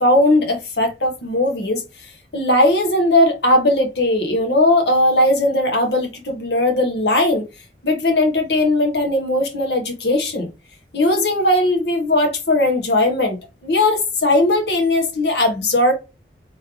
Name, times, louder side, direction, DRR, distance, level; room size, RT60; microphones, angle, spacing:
voice 1, 0.0-1.8 2.3-7.5 7.8-10.5 10.9-13.4 13.6-15.9, left 1 dB, 70° left, 1.3 m, -18 dB
3.3 x 3.2 x 3.6 m
head